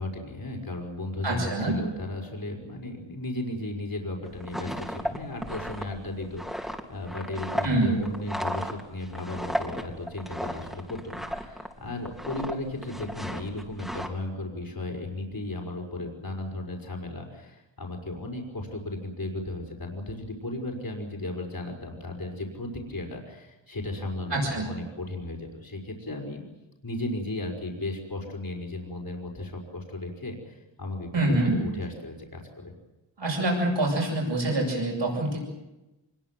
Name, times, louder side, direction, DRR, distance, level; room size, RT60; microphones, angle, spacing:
voice 1, 0.0-26.4 26.8-32.7, left 2 dB, 50° left, 1 dB, 5.6 m, -35 dB
voice 2, 1.2-1.8 7.6-8.0 24.3-24.7 31.1-31.6 33.2-35.4, right 2 dB, 70° right, 0 dB, 8.0 m, -25 dB
sound 1, 4.3-11.7 12.0-12.5 12.8-14.1, equal, ahead, 3.3 m, -34 dB
25.5 x 22.0 x 7.6 m, 0.99 s
wide cardioid pair, 80°, 44 cm